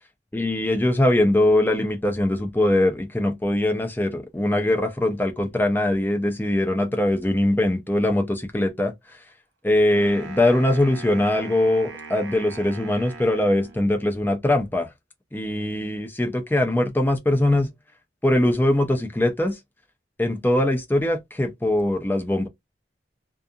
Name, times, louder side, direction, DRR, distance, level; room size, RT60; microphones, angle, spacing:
voice 1, 0.3-8.9 9.6-14.9 15.3-17.7 18.2-19.6 20.2-22.5, left 1 dB, 10° left, 0.5 m, -22 dB
Wind instrument woodwind instrument, 9.9-14.1, right 4 dB, 90° right, 0.7 m, -40 dB
2.4 x 2.3 x 2.7 m
head